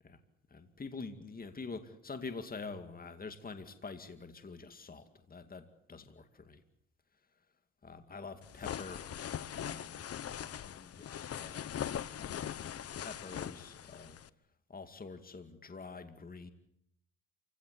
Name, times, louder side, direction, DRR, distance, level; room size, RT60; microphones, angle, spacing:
voice 1, 0.5-6.6 7.8-9.0 9.5-10.0 10.4-11.6 12.2-14.2 14.7-16.5, left 4 dB, 30° left, 9 dB, 2.3 m, -46 dB
sound 1, 8.4-14.3, left 9 dB, 50° left, 1.0 m, -41 dB
28.0 x 17.0 x 8.3 m, 0.75 s
cardioid pair, 90°, 30 cm